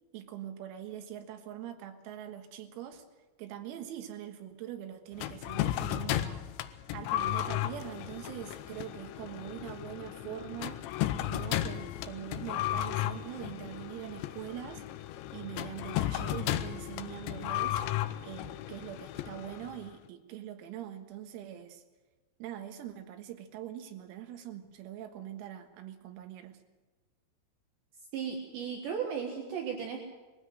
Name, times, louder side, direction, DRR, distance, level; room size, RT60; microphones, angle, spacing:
voice 1, 0.1-3.1 3.4-6.5 6.9-10.8 11.3-14.8 15.3-17.8 18.2-21.8 22.4-26.6, right 11 dB, 90° right, 6 dB, 4.3 m, -43 dB
sound 1, 5.2-19.9, left 13 dB, 80° left, 2.7 m, -35 dB
voice 2, 28.1-30.0, right 7 dB, 65° right, 2 dB, 3.5 m, -35 dB
21.5 x 16.0 x 7.9 m, 1.2 s
omnidirectional pair, 6.0 m